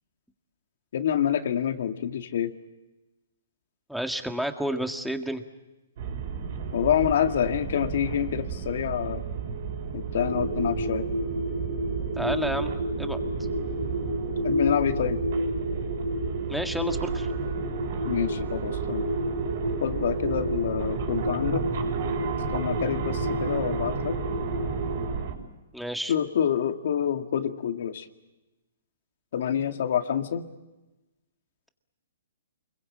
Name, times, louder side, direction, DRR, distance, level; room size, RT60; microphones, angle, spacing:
voice 1, 0.9-2.5 6.7-9.3 9.9-11.1 14.4-15.2 18.0-19.1 19.8-21.7 22.5-24.2 26.1-28.1 29.3-30.5, left 9 dB, 60° left, 7 dB, 2.0 m, -27 dB
voice 2, 3.9-5.4 12.2-12.7 13.0-13.2 16.5-17.3 25.7-26.1, right 1 dB, ahead, 6 dB, 1.8 m, -30 dB
sound 1, 6.0-25.3, right 6 dB, 55° right, 5.5 m, -34 dB
sound 2, 10.1-25.1, right 1 dB, 85° right, 6.0 m, -30 dB
29.5 x 22.0 x 8.7 m, 1.1 s
hypercardioid pair, 150°, 0 cm